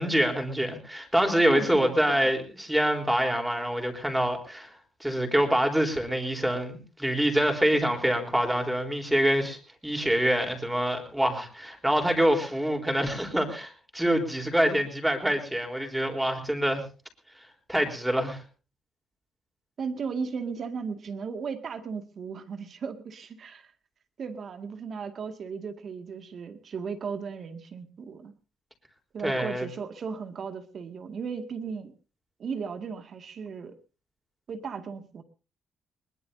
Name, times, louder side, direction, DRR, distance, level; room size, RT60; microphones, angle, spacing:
voice 1, 0.0-4.7 5.0-16.8 17.7-18.4 29.2-29.7, equal, 5° right, 4 dB, 3.9 m, -25 dB
voice 2, 1.5-2.2 19.8-23.7 24.2-28.3 29.1-31.9 32.4-33.7 34.5-35.2, right 5 dB, 55° right, 7 dB, 2.1 m, -36 dB
21.5 x 20.0 x 2.7 m, 0.35 s
cardioid pair, 90°, 0 cm